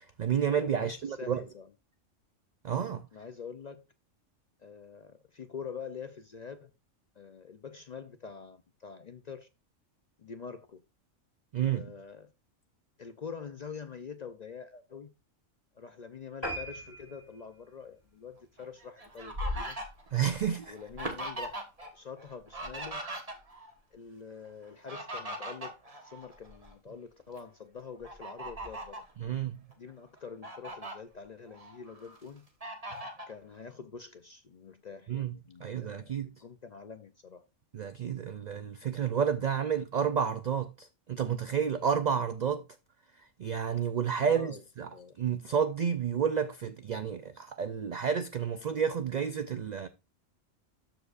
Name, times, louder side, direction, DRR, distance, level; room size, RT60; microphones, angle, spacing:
voice 1, 0.0-1.4 2.6-3.0 11.5-11.9 20.1-20.7 29.2-29.6 35.1-35.3 35.6-36.3 37.7-42.6 43.4-44.9 45.2-49.9, right 7 dB, 75° right, 0.4 m, -30 dB
voice 2, 0.7-1.7 3.1-3.9 4.6-6.7 7.2-9.5 10.2-10.8 11.6-12.3 13.0-15.1 15.7-19.8 20.7-21.6 21.9-23.0 23.9-29.1 29.8-32.5 33.3-37.4 44.2-44.6 44.9-45.2, left 6 dB, 55° left, 0.5 m, -45 dB
sound 1, 16.4-19.2 19.6-19.8 20.3-20.4 20.7-20.8 21.0-21.1, right 1 dB, 20° left, 4.2 m, -41 dB
Fowl, 18.6-21.9 22.2-23.7 24.6-26.7 27.2-27.4 28.0-29.1 29.7-29.8 30.2-30.9 31.5-32.2 32.6-33.3, equal, 30° right, 1.4 m, -39 dB
13.0 x 4.9 x 2.4 m
omnidirectional pair, 1.3 m